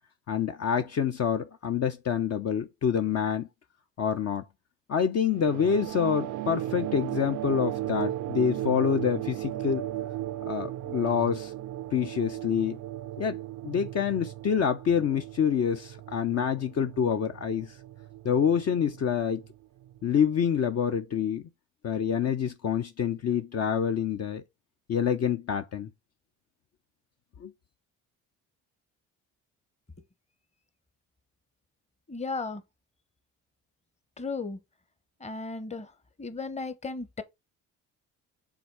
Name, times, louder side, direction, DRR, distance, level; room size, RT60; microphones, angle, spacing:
voice 1, 0.3-3.5 4.0-4.4 4.9-9.9 10.5-11.5 11.9-12.8 13.2-13.4 13.6-17.8 18.2-19.4 20.0-21.4 21.8-24.4 24.9-25.9 27.4-27.5, left 7 dB, 45° left, 0.7 m, -27 dB
sound 1, 5.3-20.2, right 14 dB, 60° right, 0.5 m, -36 dB
voice 2, 32.1-32.6 34.2-34.6 35.2-35.9 36.2-37.2, left 3 dB, 20° left, 1.0 m, -35 dB
5.9 x 3.6 x 4.7 m
supercardioid pair, 70°, 35 cm